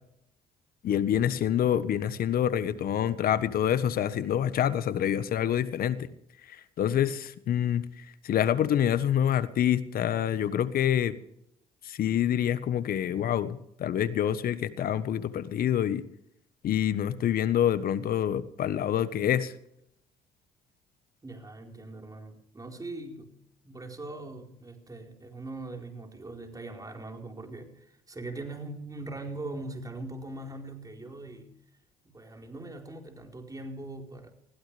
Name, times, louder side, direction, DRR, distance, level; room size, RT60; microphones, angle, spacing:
voice 1, 0.8-6.1 6.5-11.1 11.8-16.0 16.6-19.5, left 10 dB, 60° left, 14 dB, 1.3 m, -27 dB
voice 2, 21.2-23.3 23.6-31.5 32.0-34.3, right 2 dB, 20° right, 2 dB, 4.6 m, -41 dB
21.0 x 16.0 x 3.5 m, 0.75 s
supercardioid pair, 65°, 17 cm